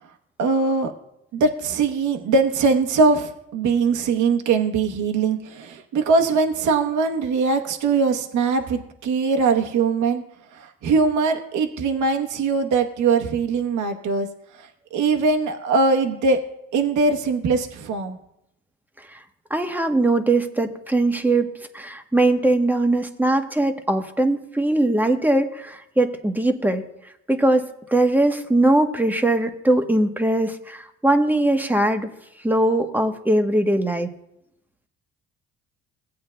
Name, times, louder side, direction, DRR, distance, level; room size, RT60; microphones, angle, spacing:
voice 1, 0.4-0.9 1.3-10.2 10.5-14.3 14.6-16.4 16.7-18.2, right 4 dB, 65° right, 4 dB, 0.9 m, -21 dB
voice 2, 19.5-26.8 27.3-32.1 32.4-34.1, right 1 dB, 5° right, 6 dB, 0.9 m, -21 dB
17.5 x 8.6 x 2.2 m, 0.80 s
supercardioid pair, 80°, 32 cm